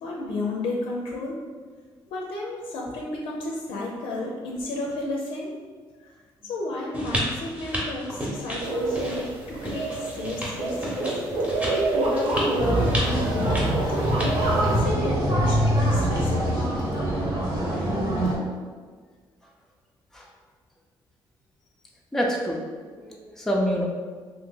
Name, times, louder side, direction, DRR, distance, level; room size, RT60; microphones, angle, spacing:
voice 1, 0.0-1.4 2.1-5.5 6.0-6.1 6.4-11.1 11.4-16.9, left 2 dB, 80° left, -2 dB, 0.5 m, -32 dB
sound 1, 6.9-14.5, equal, 15° right, 0.9 m, -33 dB
sound 2, 8.6-14.8, right 2 dB, 75° right, 0.6 m, -28 dB
sound 3, 12.6-18.3, equal, 45° right, 1.0 m, -24 dB
voice 2, 22.1-22.6 22.9-23.9, equal, 5° left, -2 dB, 0.5 m, -27 dB
2.8 x 2.5 x 3.6 m, 1.5 s
cardioid pair, 95°, 9 cm